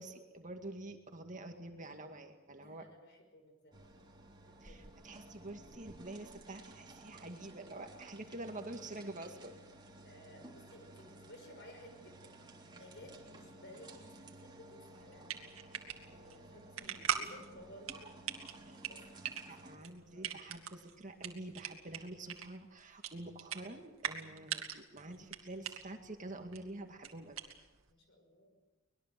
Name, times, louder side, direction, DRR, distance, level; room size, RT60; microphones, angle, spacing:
voice 1, 0.0-2.9 4.6-9.5 18.6-18.8 19.5-27.4, right 2 dB, 35° right, 4 dB, 2.1 m, -47 dB
voice 2, 2.6-3.9 4.4-4.9 10.0-12.3 12.7-14.1 14.4-15.3 16.0-19.7 19.9-20.4 27.9-28.6, left 1 dB, 55° left, 4 dB, 5.5 m, -57 dB
sound 1, 3.7-19.8, right 2 dB, 20° right, 3.3 m, -55 dB
sound 2, 15.0-27.9, right 8 dB, 70° right, 2.3 m, -43 dB
24.0 x 20.5 x 7.7 m, 1.1 s
head